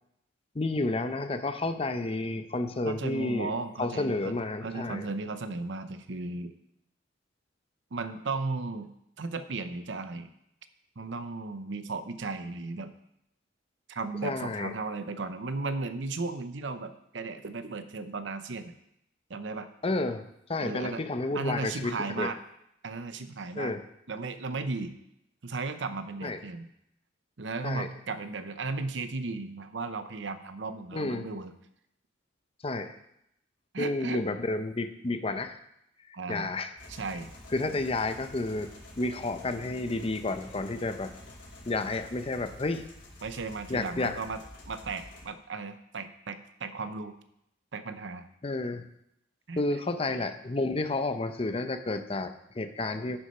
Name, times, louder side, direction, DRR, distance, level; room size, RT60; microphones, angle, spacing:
voice 1, 0.5-3.5 3.8-5.1 14.2-14.7 19.8-20.2 20.5-22.3 23.6-23.8 26.2-26.4 27.6-27.9 30.9-31.3 32.6-33.0 33.8-35.6 36.3-36.9 37.5-41.1 41.7-42.8 43.7-44.2 48.4-48.8 49.6-53.2, left 2 dB, 30° left, 9 dB, 0.6 m, -31 dB
voice 2, 2.8-4.3 4.6-6.5 7.9-8.9 9.2-10.3 11.0-12.9 13.9-18.7 19.3-19.7 20.6-21.0 21.3-22.4 22.8-23.7 24.1-24.9 25.4-26.7 27.4-31.5 33.7-34.2 36.1-36.5 36.9-37.3 43.2-47.2 47.7-48.3 49.5-49.6, right 3 dB, 70° right, 10 dB, 0.7 m, -35 dB
sound 1, 36.8-45.2, left 1 dB, 75° left, 3.0 m, -49 dB
9.7 x 6.2 x 5.6 m, 0.78 s
head